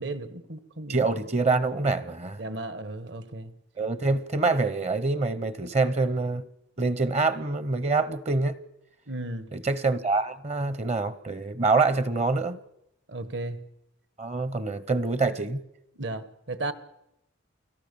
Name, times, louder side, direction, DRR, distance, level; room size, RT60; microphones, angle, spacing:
voice 1, 0.0-1.0 2.4-3.5 9.1-9.4 13.1-13.6 16.0-16.7, right 2 dB, 65° right, 1.4 m, -34 dB
voice 2, 0.9-2.4 3.8-6.4 6.8-8.6 9.5-12.6 14.2-15.6, right 3 dB, 35° right, 0.7 m, -25 dB
29.0 x 17.5 x 6.9 m
head